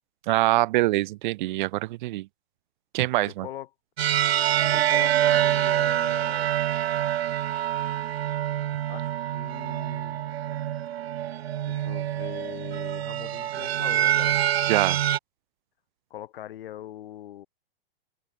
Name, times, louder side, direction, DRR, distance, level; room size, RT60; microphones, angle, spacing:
voice 1, 0.3-2.3 2.9-3.5 14.7-15.0, right 18 dB, 50° right, 3.6 m, -24 dB
voice 2, 3.2-3.7 4.7-6.6 8.9-10.2 11.7-14.4 16.1-17.5, left 12 dB, 65° left, 7.0 m, -41 dB
sound 1, 4.0-15.2, right 12 dB, 90° right, 0.7 m, -26 dB
hypercardioid pair, 145°, 30 cm